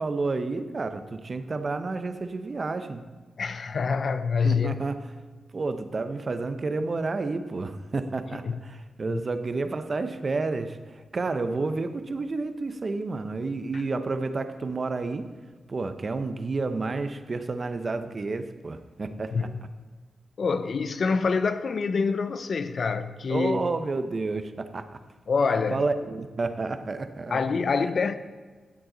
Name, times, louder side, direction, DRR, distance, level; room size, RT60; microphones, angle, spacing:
voice 1, 0.0-3.0 4.4-5.0 5.5-15.3 15.7-19.5 23.3-24.9 25.7-27.4, right 3 dB, 50° right, 0.8 m, -30 dB
voice 2, 3.4-4.7 8.4-8.6 9.1-9.2 19.3-19.5 20.4-23.6 25.3-25.8 27.3-28.2, left 5 dB, 65° left, 0.6 m, -26 dB
12.0 x 7.7 x 3.9 m
cardioid pair, 50°, 0 cm